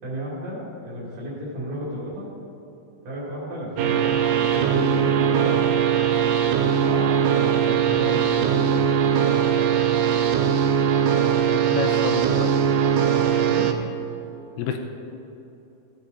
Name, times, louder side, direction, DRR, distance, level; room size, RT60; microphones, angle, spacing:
voice 1, 0.0-2.3 3.0-5.6 6.6-9.0 13.5-13.7, equal, 55° right, -6 dB, 4.4 m, -33 dB
sound 1, 3.8-13.7, right 8 dB, 80° right, 2.3 m, -20 dB
voice 2, 11.5-12.5 14.6-14.8, left 6 dB, 80° left, 4 dB, 2.5 m, -29 dB
15.0 x 8.6 x 4.0 m, 2.9 s
omnidirectional pair, 4.8 m